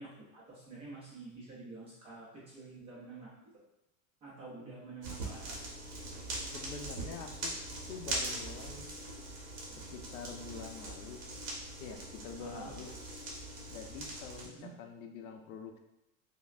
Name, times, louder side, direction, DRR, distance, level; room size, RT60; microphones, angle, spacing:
voice 1, 0.0-3.3 4.2-5.8 8.8-8.9 12.4-12.7 14.4-14.7, right 3 dB, 15° right, -7 dB, 0.3 m, -48 dB
sound 1, 5.0-14.5, right 2 dB, 50° right, 1.3 m, -41 dB
voice 2, 6.5-7.6 7.9-8.9 9.9-11.2 11.8-12.9 13.7-15.8, left 6 dB, 85° left, 4 dB, 0.7 m, -46 dB
5.6 x 2.0 x 2.4 m, 0.91 s
supercardioid pair, 160°, 43 cm